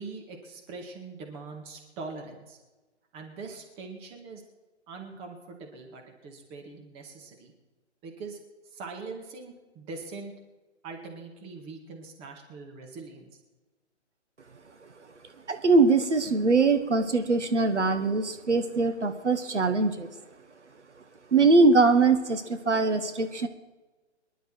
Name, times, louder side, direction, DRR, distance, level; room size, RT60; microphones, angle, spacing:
voice 1, 0.0-2.6 3.1-4.4 4.9-7.5 8.0-8.4 8.7-10.3 10.8-13.3, right 4 dB, 15° right, 2 dB, 1.9 m, -42 dB
voice 2, 15.5-20.1 21.3-23.5, right 3 dB, 70° right, 8 dB, 1.5 m, -22 dB
24.0 x 11.0 x 4.6 m, 1.2 s
figure-of-eight pair, 135°, 36 cm